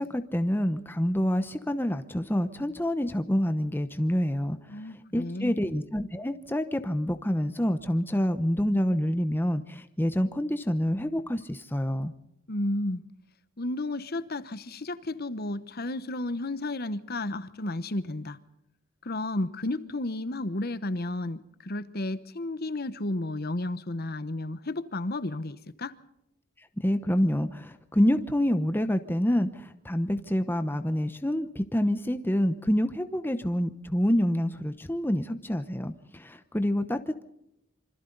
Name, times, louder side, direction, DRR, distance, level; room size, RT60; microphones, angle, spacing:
voice 1, 0.0-12.1 26.8-37.2, equal, 10° left, 0.8 m, -27 dB
voice 2, 4.7-5.6 12.5-13.0 13.6-18.4 19.0-25.9, left 2 dB, 45° left, 1.0 m, -32 dB
26.5 x 25.5 x 4.0 m
head